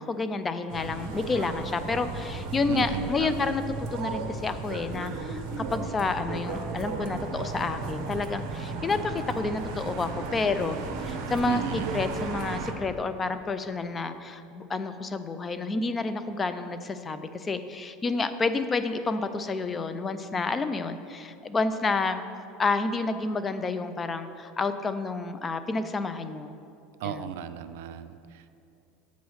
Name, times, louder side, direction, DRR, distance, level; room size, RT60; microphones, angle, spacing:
voice 1, 0.0-11.6 11.9-22.2 22.6-26.5 27.0-27.3, left 3 dB, 20° left, 11 dB, 0.3 m, -30 dB
sound 1, 0.7-12.7, right 4 dB, 60° right, 0.8 m, -35 dB
voice 2, 2.7-3.6 11.5-12.0 27.0-28.5, right 10 dB, 80° right, 11 dB, 0.3 m, -35 dB
8.1 x 3.1 x 6.2 m, 2.6 s
supercardioid pair, 120°, 0 cm